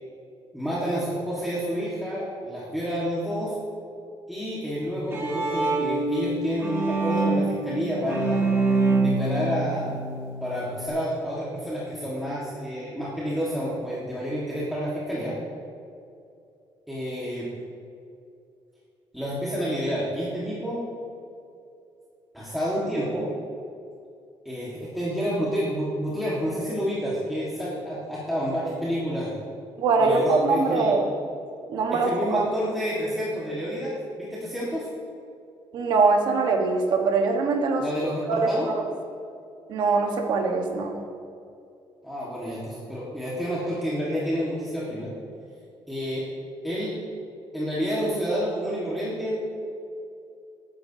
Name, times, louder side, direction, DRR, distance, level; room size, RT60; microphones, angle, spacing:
voice 1, 0.5-3.5 4.3-8.4 9.0-9.9 10.4-15.4 16.9-17.5 19.1-20.8 22.3-23.3 24.5-29.3 30.0-30.9 31.9-34.9 37.8-38.7 42.0-45.1 45.9-46.2 46.6-46.9 47.5-49.4, equal, ahead, -8 dB, 1.7 m, -29 dB
Bowed string instrument, 4.8-10.9, right 3 dB, 30° right, 1.9 m, -26 dB
voice 2, 29.8-31.0 31.7-32.4 35.7-37.8 38.3-38.5 39.7-41.0, right 4 dB, 60° right, 3 dB, 1.4 m, -22 dB
19.5 x 10.0 x 2.9 m, 2.5 s
cardioid pair, 180°, 9 cm